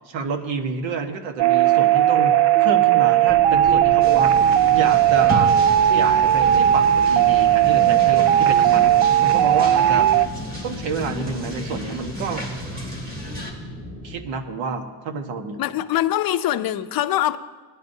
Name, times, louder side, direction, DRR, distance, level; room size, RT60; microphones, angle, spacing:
voice 1, 0.1-4.3 4.7-5.5 5.8-10.1 10.6-12.4 14.0-15.6, right 5 dB, 90° right, 1.4 m, -29 dB
sound 1, 1.4-10.3, right 11 dB, 65° right, 0.5 m, -17 dB
sound 2, 3.3-14.2, equal, 45° right, 3.3 m, -37 dB
sound 3, 4.0-13.5, left 1 dB, 20° right, 1.8 m, -33 dB
voice 2, 15.6-17.4, left 13 dB, 55° left, 0.5 m, -23 dB
19.5 x 10.5 x 2.7 m
cardioid pair, 170°, 44 cm